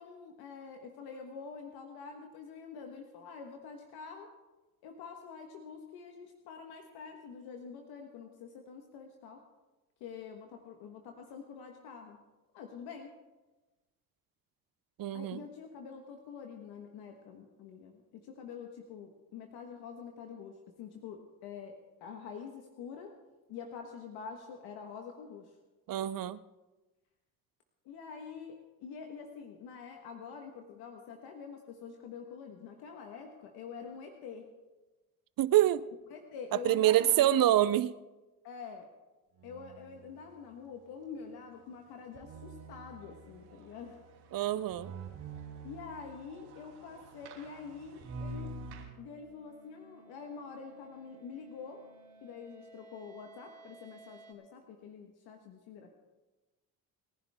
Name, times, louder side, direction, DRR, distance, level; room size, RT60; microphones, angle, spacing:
voice 1, 0.0-4.3 4.8-9.4 10.0-12.2 12.5-13.2 15.1-23.1 23.5-25.5 25.9-26.1 27.8-34.5 36.1-37.5 38.4-38.9 39.4-44.0 45.6-48.6 49.0-51.8 52.2-55.9, left 6 dB, 90° left, 3 dB, 1.5 m, -46 dB
voice 2, 15.0-15.4 25.9-26.4 35.4-35.8 36.6-37.9 44.3-44.9, right 13 dB, 65° right, 16 dB, 0.7 m, -26 dB
sound 1, 39.4-40.3 42.1-48.8, right 3 dB, 90° right, 3.0 m, -47 dB
sound 2, 48.0-54.3, right 3 dB, 10° left, 3.6 m, -58 dB
28.5 x 11.0 x 3.6 m, 1.1 s
cardioid pair, 75°, 37 cm